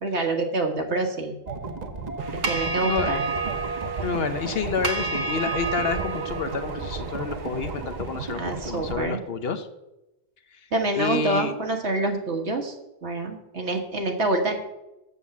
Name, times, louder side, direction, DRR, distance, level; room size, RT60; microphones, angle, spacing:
voice 1, 0.0-1.3 2.5-3.2 8.3-9.2 10.7-12.7 13.0-14.6, right 2 dB, 75° right, 3 dB, 1.8 m, -26 dB
sound 1, 1.5-9.0, right 3 dB, 40° right, 1.0 m, -33 dB
sound 2, 2.2-8.6, right 4 dB, 60° right, 1.3 m, -32 dB
voice 2, 4.0-9.7 10.5-10.6 10.9-11.5, left 5 dB, 65° left, 9 dB, 1.0 m, -29 dB
8.0 x 7.1 x 7.3 m, 0.96 s
omnidirectional pair, 1.2 m